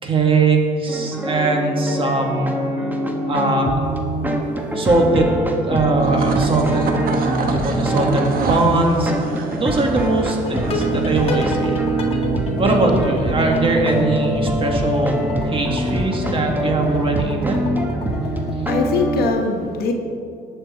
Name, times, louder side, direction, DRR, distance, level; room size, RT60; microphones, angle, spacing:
voice 1, 0.0-2.6 3.3-3.9 4.7-6.9 7.3-9.1 9.5-11.7 12.6-17.7, right 2 dB, 30° right, 1 dB, 2.2 m, -20 dB
sound 1, 0.9-19.3, right 1 dB, 10° right, 1.4 m, -24 dB
sound 2, 5.9-11.8, right 4 dB, 60° right, 1.4 m, -29 dB
sound 3, 10.4-18.6, left 2 dB, 35° left, 1.9 m, -30 dB
voice 2, 18.0-19.9, left 5 dB, 65° left, 3 dB, 1.3 m, -23 dB
19.5 x 6.8 x 4.5 m, 2.4 s
cardioid pair, 110°, 17 cm